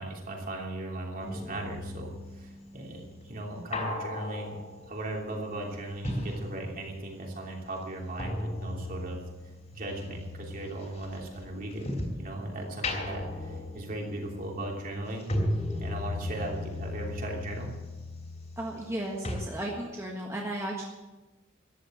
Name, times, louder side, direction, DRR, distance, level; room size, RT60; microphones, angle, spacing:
voice 1, 0.0-4.6 4.9-9.2 9.7-11.9 12.2-15.3 15.8-17.7, right 1 dB, 40° right, 0 dB, 3.1 m, -37 dB
sound 1, 1.2-7.2 7.4-12.3 12.7-19.0 19.2-19.4, left 1 dB, 35° left, 3.5 m, -37 dB
voice 2, 18.6-20.9, right 1 dB, 15° right, -2 dB, 1.6 m, -34 dB
14.0 x 10.5 x 7.7 m, 1.1 s
head